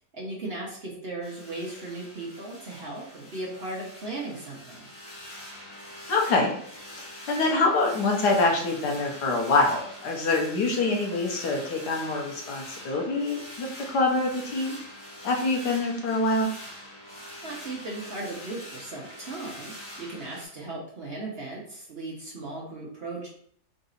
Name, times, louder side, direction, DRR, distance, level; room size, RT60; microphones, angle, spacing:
voice 1, 0.1-4.9 17.4-19.7 20.0-23.3, right 2 dB, 45° right, -3 dB, 0.9 m, -37 dB
sound 1, 1.2-20.5, equal, 40° left, 1.4 m, -44 dB
voice 2, 6.1-6.5 6.9-14.8 15.2-16.5, left 3 dB, 80° left, 0 dB, 1.5 m, -25 dB
3.9 x 2.6 x 3.8 m, 0.62 s
omnidirectional pair, 1.8 m